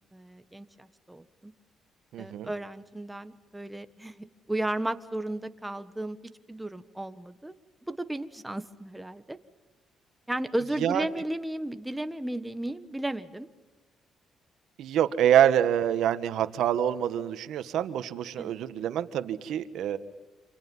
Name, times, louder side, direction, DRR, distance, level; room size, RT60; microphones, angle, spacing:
voice 1, 0.0-1.5 2.2-6.2 6.5-7.5 7.9-9.4 10.3-13.5 18.4-18.5, right 1 dB, 10° right, 11 dB, 1.6 m, -34 dB
voice 2, 2.1-2.5 10.8-11.0 14.8-20.0, right 10 dB, 80° right, 11 dB, 1.5 m, -26 dB
28.5 x 27.0 x 5.6 m, 1.2 s
cardioid pair, 90°, 0 cm